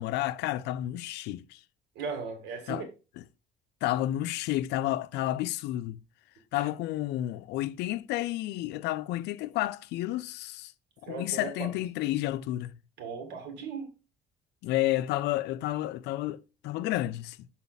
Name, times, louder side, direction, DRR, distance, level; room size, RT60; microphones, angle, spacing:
voice 1, 0.0-1.6 2.7-2.8 3.8-6.0 6.5-10.7 11.0-12.7 14.6-17.4, left 15 dB, 85° left, 0.5 m, -31 dB
voice 2, 2.0-2.9 6.5-6.7 11.1-11.7 13.0-13.9, right 5 dB, 85° right, 2.1 m, -37 dB
7.2 x 4.2 x 4.0 m
cardioid pair, 110°, 17 cm